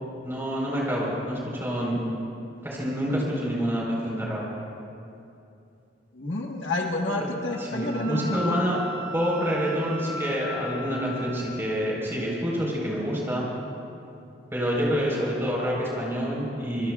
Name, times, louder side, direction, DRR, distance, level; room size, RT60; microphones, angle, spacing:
voice 1, 0.2-2.0 2.6-4.4 7.2-7.3 7.6-8.8 9.1-13.5 14.5-16.9, equal, 15° right, -4 dB, 4.2 m, -27 dB
voice 2, 6.1-8.6, left 2 dB, 70° left, 0 dB, 1.4 m, -29 dB
Wind instrument woodwind instrument, 7.5-11.5, left 1 dB, 80° right, 2.9 m, -37 dB
25.5 x 21.0 x 2.4 m, 2.7 s
head